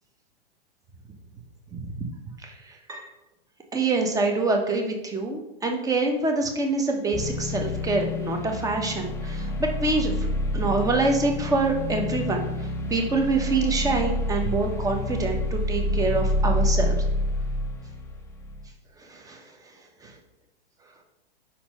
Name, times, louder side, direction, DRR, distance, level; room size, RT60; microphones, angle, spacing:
voice 1, 3.7-12.5 12.9-17.0 19.1-19.4 20.0-20.1, right 3 dB, 10° right, 3 dB, 1.0 m, -26 dB
sound 1, 7.1-18.7, left 1 dB, 10° left, 0.7 m, -28 dB
5.3 x 4.4 x 5.3 m, 0.87 s
hypercardioid pair, 110°, 30 cm